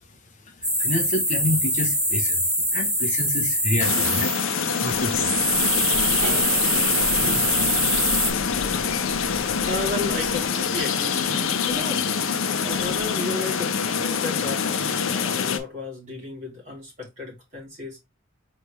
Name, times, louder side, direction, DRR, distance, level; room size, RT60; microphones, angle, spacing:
sound 1, 0.6-8.3, equal, 5° right, 1.1 m, -24 dB
voice 1, 0.8-2.4 2.7-4.3 4.7-5.7, left 1 dB, 35° left, 0.9 m, -28 dB
sound 2, 3.8-15.6, left 6 dB, 70° left, 0.6 m, -25 dB
sound 3, 4.9-10.5, right 1 dB, 65° right, 1.5 m, -36 dB
voice 2, 9.4-12.1 12.6-18.0, left 2 dB, 35° right, 2.4 m, -34 dB
4.3 x 3.2 x 3.3 m
head